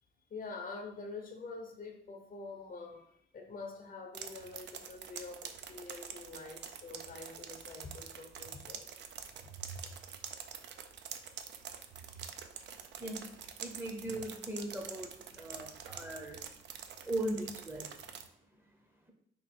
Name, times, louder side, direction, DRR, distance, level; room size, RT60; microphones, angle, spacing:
voice 1, 0.3-8.9, left 3 dB, 45° left, 3 dB, 0.7 m, -46 dB
sound 1, 4.1-18.3, right 7 dB, 60° right, 0.4 m, -46 dB
voice 2, 13.6-16.4 17.0-18.1, right 1 dB, 10° right, 1 dB, 0.7 m, -39 dB
3.0 x 2.6 x 4.2 m, 0.67 s
cardioid pair, 90°, 20 cm